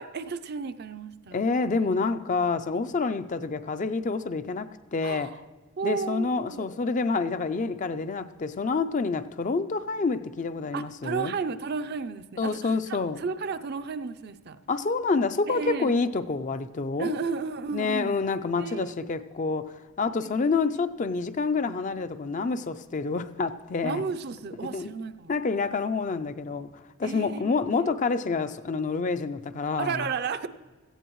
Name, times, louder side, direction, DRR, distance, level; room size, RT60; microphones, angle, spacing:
voice 1, 0.0-1.4 5.0-5.4 5.8-6.7 10.7-14.6 15.5-15.9 17.0-18.1 18.6-18.9 20.2-20.3 23.8-25.3 27.0-27.8 29.8-30.5, right 5 dB, 50° right, 0.5 m, -33 dB
voice 2, 1.3-5.3 5.8-11.3 12.4-13.2 14.7-17.2 17.7-24.0 24.7-24.9 25.3-26.7 27.0-30.1, left 4 dB, 40° left, 0.4 m, -28 dB
17.0 x 14.5 x 3.1 m
head